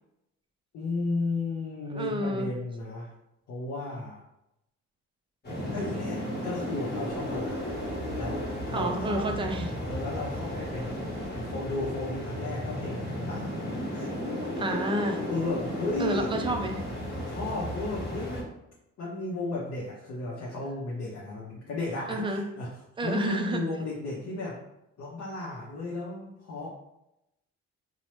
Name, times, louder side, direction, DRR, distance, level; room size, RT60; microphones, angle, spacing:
voice 1, 0.7-3.1 3.5-4.2 5.7-9.2 9.9-11.0 11.3-13.6 13.9-14.1 15.3-16.5 17.3-18.5 19.0-22.7 23.0-24.6 25.0-26.7, left 2 dB, 55° left, -4 dB, 0.7 m, -34 dB
voice 2, 1.9-2.5 8.7-9.7 14.6-15.2 16.0-16.8 22.1-22.4 23.0-23.6, right 1 dB, 15° right, 3 dB, 0.4 m, -29 dB
sound 1, 5.4-18.4, equal, 35° left, 1.1 m, -34 dB
2.9 x 2.0 x 3.0 m, 0.85 s
cardioid pair, 90°, 30 cm